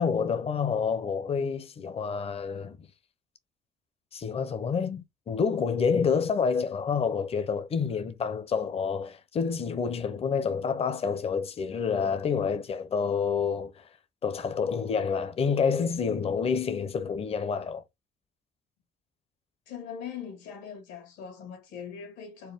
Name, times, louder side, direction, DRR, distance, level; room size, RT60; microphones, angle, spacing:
voice 1, 0.0-2.8 4.1-13.8 14.2-17.8, left 6 dB, 35° left, 0.7 m, -28 dB
voice 2, 19.7-22.5, left 7 dB, 85° left, 1.9 m, -41 dB
4.5 x 2.1 x 3.5 m
cardioid pair, 110°, 17 cm